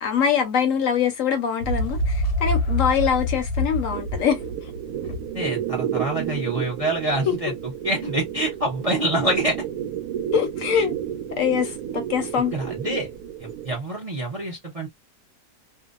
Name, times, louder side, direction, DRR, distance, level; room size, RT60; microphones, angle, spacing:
voice 1, 0.0-4.4 7.3-7.4 10.3-10.9 11.3-12.5, left 7 dB, 65° left, 0.9 m, -23 dB
sound 1, 1.6-5.4, left 1 dB, 85° left, 1.2 m, -26 dB
sound 2, 3.9-13.8, right 10 dB, 80° right, 1.1 m, -31 dB
voice 2, 5.3-9.6 10.7-10.8 12.5-13.1 13.4-14.9, right 1 dB, 40° right, 0.5 m, -26 dB
2.6 x 2.1 x 2.3 m
omnidirectional pair, 1.6 m